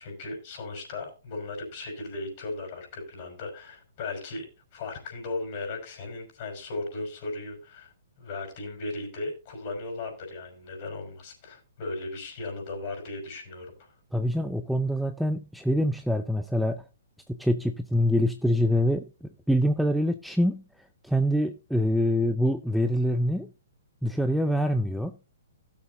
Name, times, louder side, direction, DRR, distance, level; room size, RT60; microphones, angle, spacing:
voice 1, 0.0-4.5 4.7-7.9 8.2-13.9, left 2 dB, 45° left, 5.5 m, -36 dB
voice 2, 14.1-16.8 17.3-20.6 21.0-23.5 24.0-25.1, equal, ahead, 0.6 m, -25 dB
17.0 x 7.3 x 2.6 m
figure-of-eight pair, 120°, 0 cm